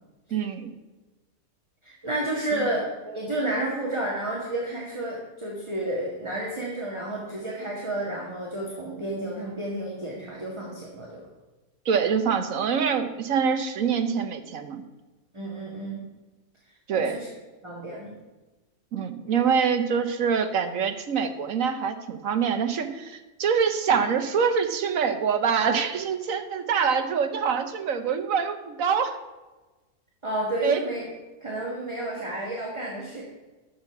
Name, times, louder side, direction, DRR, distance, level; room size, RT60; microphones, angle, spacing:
voice 1, 0.3-0.7 11.8-14.8 16.9-17.2 18.9-29.2 30.6-30.8, right 6 dB, 70° right, 8 dB, 1.3 m, -25 dB
voice 2, 1.8-11.3 15.3-16.0 16.9-17.3 17.6-18.2 30.2-31.0 31.4-33.2, right 1 dB, 20° right, -3 dB, 1.7 m, -31 dB
11.0 x 7.2 x 5.8 m, 1.2 s
omnidirectional pair, 1.5 m